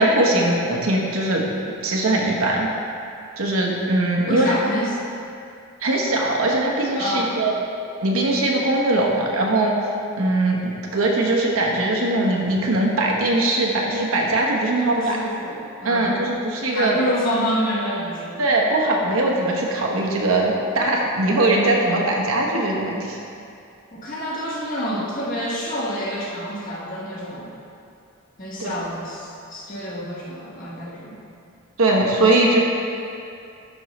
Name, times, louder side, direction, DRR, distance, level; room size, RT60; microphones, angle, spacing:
voice 1, 0.0-1.4 1.8-2.7 3.4-4.6 5.8-7.5 8.0-9.8 10.2-15.2 15.8-17.0 18.4-23.2 28.6-28.7 31.8-32.6, right 2 dB, 75° right, -2 dB, 1.1 m, -20 dB
voice 2, 4.3-5.0 6.9-7.4 14.8-16.2 16.7-18.4 23.9-27.5 28.4-31.2, equal, 40° left, -6 dB, 1.3 m, -27 dB
10.5 x 5.5 x 3.1 m, 2.5 s
head